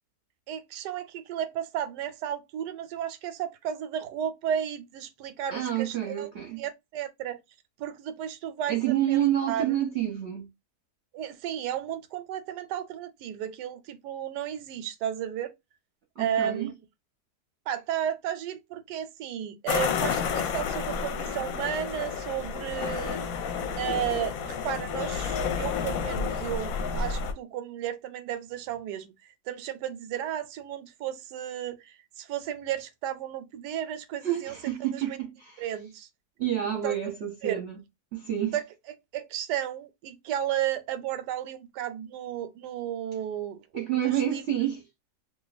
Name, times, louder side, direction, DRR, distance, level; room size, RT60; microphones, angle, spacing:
voice 1, 0.5-6.3 6.6-7.4 7.8-9.7 11.1-15.5 16.2-16.7 17.7-23.2 23.8-29.1 29.5-34.5 34.9-35.2 35.6-36.1 36.8-37.0 37.4-37.6 38.5-38.6 39.1-43.6 43.9-44.4, right 10 dB, 90° right, 1.2 m, -33 dB
voice 2, 5.5-6.6 8.7-10.5 16.2-16.7 34.2-35.7 36.4-37.8 38.1-38.6 43.7-44.8, right 11 dB, 55° right, 0.8 m, -28 dB
sound 1, 19.7-27.3, left 6 dB, 70° left, 1.0 m, -30 dB
2.6 x 2.5 x 3.9 m
omnidirectional pair, 1.7 m